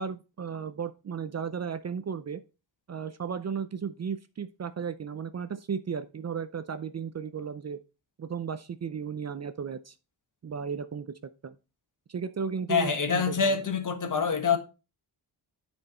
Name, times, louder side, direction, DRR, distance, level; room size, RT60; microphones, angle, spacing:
voice 1, 0.0-2.4 2.9-7.8 8.2-9.9 10.4-11.1 11.4-11.6 12.1-13.6, right 6 dB, 40° right, 0.5 m, -35 dB
voice 2, 12.7-14.6, left 5 dB, 45° left, 1.4 m, -26 dB
9.6 x 4.5 x 4.2 m
wide cardioid pair, 115°, 43 cm